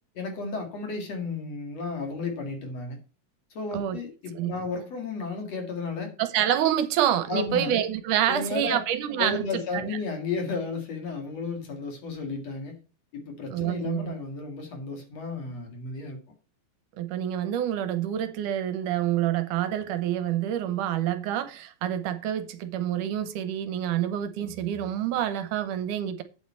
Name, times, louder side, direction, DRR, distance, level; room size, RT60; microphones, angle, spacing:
voice 1, 0.1-3.0 3.5-6.1 7.3-7.7 8.3-8.8 9.2-12.8 13.1-16.2, left 4 dB, 50° left, 3.0 m, -33 dB
voice 2, 6.2-9.4 13.5-14.1 17.0-26.2, right 11 dB, 75° right, 2.1 m, -27 dB
8.7 x 8.5 x 4.5 m
omnidirectional pair, 4.0 m